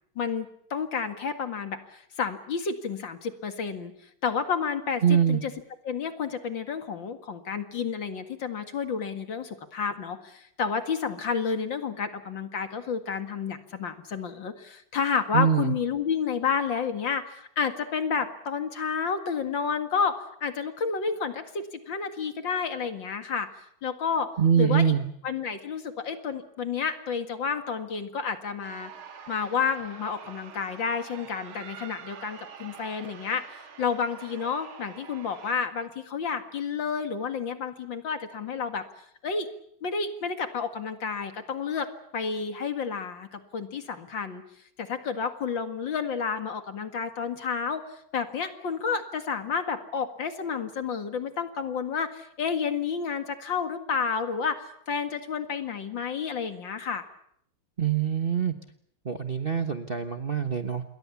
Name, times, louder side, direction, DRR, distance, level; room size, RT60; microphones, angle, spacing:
voice 1, 0.2-3.9 4.2-5.5 5.8-23.5 23.8-24.3 24.6-24.8 25.2-28.9 29.3-38.8 39.2-39.5 39.8-41.9 42.1-44.4 44.8-47.8 48.1-57.0, left 6 dB, 65° left, 8 dB, 2.6 m, -30 dB
voice 2, 5.0-5.4 15.3-15.7 24.4-25.0 57.8-58.5 59.0-60.8, right 8 dB, 35° right, 6 dB, 1.2 m, -24 dB
sound 1, 28.6-35.5, right 7 dB, 85° right, 2.6 m, -46 dB
28.0 x 22.0 x 7.2 m, 0.70 s
omnidirectional pair, 2.3 m